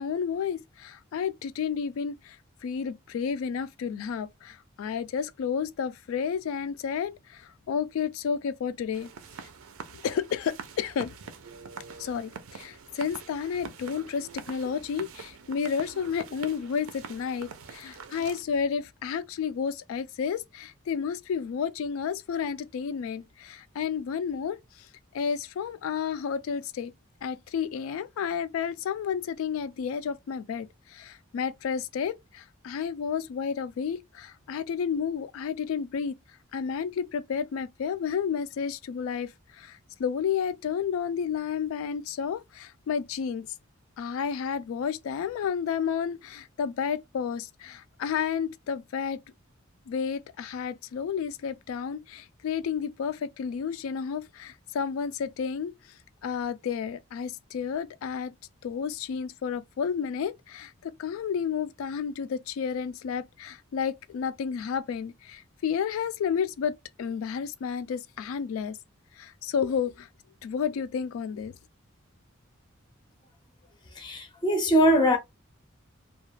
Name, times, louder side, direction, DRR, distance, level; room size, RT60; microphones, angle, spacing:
voice 1, 0.0-2.4 2.6-9.1 10.0-11.2 12.0-24.9 25.1-26.9 27.2-36.1 36.5-43.5 44.0-49.2 49.9-55.7 56.2-58.3 58.6-68.8 69.2-70.1 70.4-71.5, left 7 dB, 80° left, 0.3 m, -31 dB
sound 1, 8.9-18.4, right 5 dB, 85° right, 0.5 m, -44 dB
voice 2, 73.9-75.2, equal, 20° left, 0.5 m, -22 dB
2.3 x 2.2 x 3.1 m
head